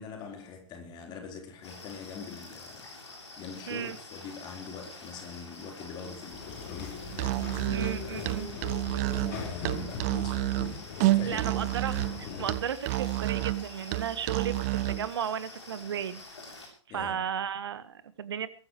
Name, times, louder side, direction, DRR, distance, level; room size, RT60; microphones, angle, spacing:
voice 1, 0.0-7.8 8.0-8.7 9.0-11.8 12.3-12.6 16.9-17.2, left 5 dB, 25° left, 4.3 m, -44 dB
sound 1, 1.6-16.7, left 2 dB, 65° left, 7.6 m, -47 dB
sound 2, 6.3-12.6, left 5 dB, 40° left, 4.9 m, -40 dB
Musical instrument, 7.1-15.1, right 17 dB, 35° right, 0.8 m, -30 dB
voice 2, 7.7-8.5 11.3-14.6 14.9-16.2 16.9-18.5, right 8 dB, 60° right, 1.7 m, -34 dB
22.5 x 14.5 x 3.2 m
figure-of-eight pair, 115°, 15 cm